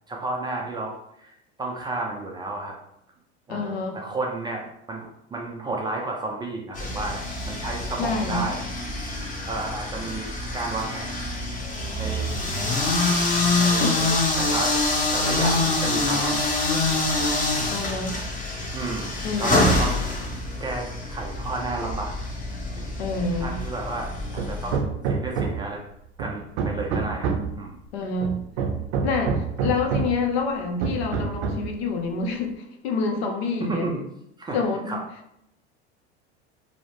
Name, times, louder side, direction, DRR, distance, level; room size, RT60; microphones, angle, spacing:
voice 1, 0.1-2.7 3.5-8.6 9.5-11.3 12.0-12.3 13.2-14.1 14.4-14.8 15.1-17.0 18.7-20.0 20.6-22.2 22.7-22.9 23.2-25.8 26.2-27.8 33.7-34.0 34.4-34.6 34.9-35.0, right 2 dB, 15° right, -1 dB, 0.3 m, -32 dB
voice 2, 3.5-4.0 8.0-8.5 13.8-13.9 17.7-18.2 19.2-19.7 23.0-23.6 27.9-28.4 29.0-33.9 34.5-35.0, left 3 dB, 65° left, 4 dB, 0.6 m, -27 dB
sound 1, 6.8-24.8, left 2 dB, 25° left, 0.8 m, -26 dB
Hammer, 24.4-25.8 26.2-27.6 28.2-30.2 30.8-31.7, right 5 dB, 65° right, 0.6 m, -27 dB
2.7 x 2.0 x 3.0 m, 0.77 s
hypercardioid pair, 85°, 34 cm